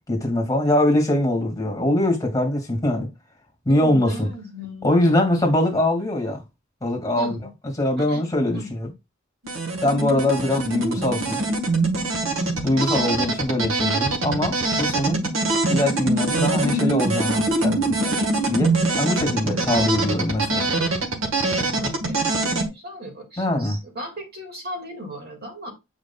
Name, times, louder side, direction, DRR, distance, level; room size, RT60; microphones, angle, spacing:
voice 1, 0.1-3.1 3.7-4.3 4.8-6.4 6.8-7.4 7.8-8.9 9.8-11.4 12.6-15.2 15.7-18.1 18.5-20.7 23.4-23.8, left 1 dB, 15° left, 2.3 m, -22 dB
voice 2, 3.7-5.1 7.2-7.5 8.0-8.2 8.5-8.7 21.6-25.7, equal, 50° right, 2.2 m, -37 dB
sound 1, 9.4-22.7, right 2 dB, 65° right, 1.5 m, -23 dB
8.0 x 5.0 x 2.4 m
head